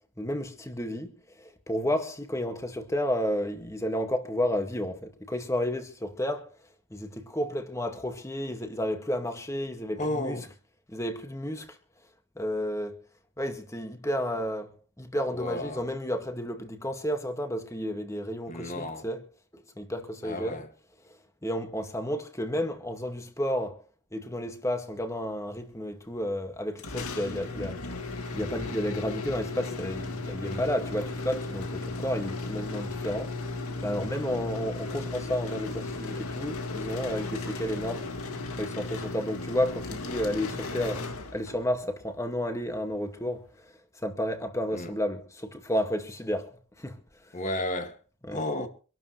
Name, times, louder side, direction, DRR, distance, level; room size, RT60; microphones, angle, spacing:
voice 1, 0.2-6.5 6.9-10.4 10.9-11.8 12.4-13.0 13.4-14.7 15.0-19.2 19.5-20.6 21.4-23.8 24.1-28.0 28.3-38.1 38.6-41.0 41.3-43.7 44.0-47.0 48.3-48.4, equal, 15° left, 1.9 m, -32 dB
voice 2, 10.0-10.5 15.3-15.8 18.5-19.1 20.2-20.7 30.4-30.7 44.7-44.9 47.3-48.0 48.3-48.7, left 1 dB, 35° left, 2.0 m, -33 dB
sound 1, 26.8-41.7, left 3 dB, 85° left, 2.3 m, -35 dB
26.0 x 12.5 x 3.2 m
head